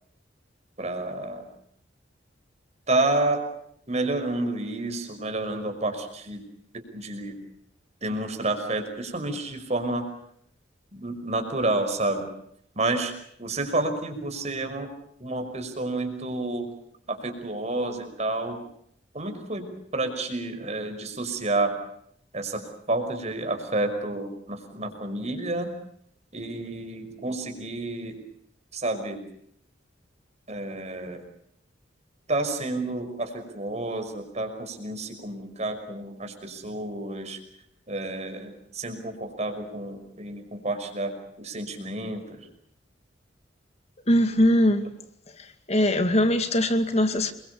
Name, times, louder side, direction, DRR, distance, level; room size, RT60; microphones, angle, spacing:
voice 1, 0.8-1.5 2.9-3.4 3.9-6.4 6.7-7.4 8.0-10.0 10.9-12.3 12.7-13.1 13.4-14.9 15.2-16.7 17.1-18.6 19.1-19.7 19.9-21.7 22.3-25.7 26.3-28.2 28.7-29.2 30.5-31.2 32.3-37.4 37.9-42.5, right 2 dB, 35° right, 5.6 m, -30 dB
voice 2, 44.1-44.9 45.7-47.3, left 1 dB, 35° left, 2.4 m, -21 dB
29.0 x 23.0 x 6.8 m
head